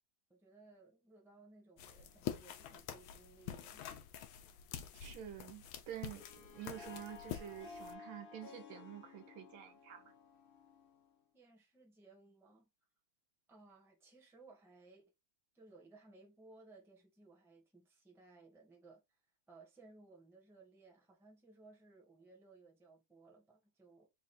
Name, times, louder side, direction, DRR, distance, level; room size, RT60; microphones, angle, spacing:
voice 1, 0.3-3.8 11.3-12.7 13.5-15.0 15.5-19.2 19.5-24.1, right 3 dB, ahead, 0.8 m, -61 dB
sound 1, 1.8-7.9, left 10 dB, 85° left, 1.5 m, -47 dB
voice 2, 4.9-10.1, right 11 dB, 85° right, 1.7 m, -49 dB
Harp, 6.0-11.2, left 5 dB, 70° left, 0.5 m, -55 dB
4.1 x 2.5 x 4.2 m
omnidirectional pair, 2.2 m